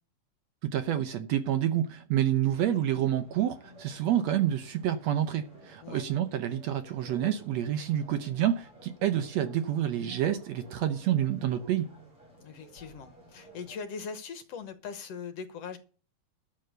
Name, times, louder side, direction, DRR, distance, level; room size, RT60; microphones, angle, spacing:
voice 1, 0.6-11.9, right 11 dB, 70° right, 1.7 m, -28 dB
sound 1, 2.4-13.8, equal, 40° right, 6.4 m, -54 dB
voice 2, 12.4-15.8, left 5 dB, 60° left, 1.9 m, -41 dB
12.5 x 7.0 x 6.6 m
omnidirectional pair, 3.7 m